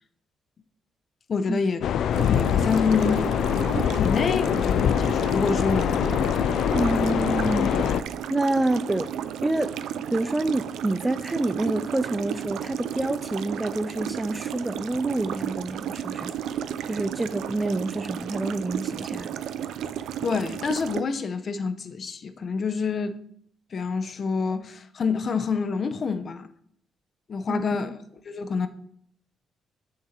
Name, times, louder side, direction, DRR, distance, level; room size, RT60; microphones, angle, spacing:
voice 1, 1.3-1.8 2.1-3.2 4.0-6.2 20.2-23.2 23.7-26.5 27.3-28.0 28.3-28.7, left 5 dB, 45° left, 0.7 m, -27 dB
sound 1, 1.8-8.0, left 9 dB, 75° left, 0.3 m, -24 dB
sound 2, 2.1-21.0, right 9 dB, 85° right, 0.4 m, -34 dB
voice 2, 6.7-7.8 8.3-9.1 9.4-9.8 10.1-16.3 16.8-19.4 27.5-27.9, right 2 dB, 15° right, 0.3 m, -27 dB
6.7 x 6.5 x 4.3 m
cardioid pair, 120°, 0 cm